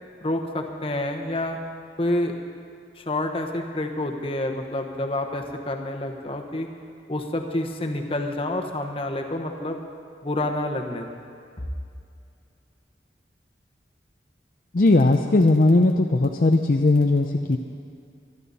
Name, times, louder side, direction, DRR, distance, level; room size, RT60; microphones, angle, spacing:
voice 1, 0.2-1.6 2.0-2.3 3.0-6.7 7.1-9.8 10.2-11.2, left 1 dB, 30° left, 3 dB, 1.1 m, -28 dB
voice 2, 14.7-17.6, left 2 dB, 50° left, 4 dB, 0.6 m, -18 dB
24.5 x 11.0 x 4.2 m, 2.4 s
head